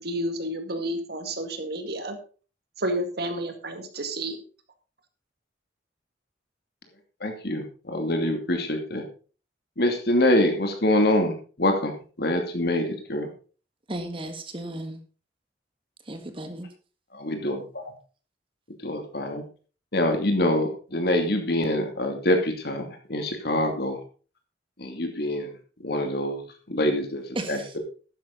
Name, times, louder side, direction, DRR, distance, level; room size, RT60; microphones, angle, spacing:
voice 1, 0.0-2.2 2.8-4.4, right 1 dB, 60° right, 7 dB, 1.9 m, -30 dB
voice 2, 7.2-9.0 9.8-13.3 17.1-17.9 18.8-19.4 19.9-22.8 23.1-24.0 24.8-25.5 25.8-27.8, left 1 dB, 60° left, 4 dB, 2.6 m, -25 dB
voice 3, 13.9-15.0 16.1-16.7 27.3-27.7, right 1 dB, 30° right, 7 dB, 1.7 m, -34 dB
12.0 x 9.5 x 4.0 m, 0.37 s
head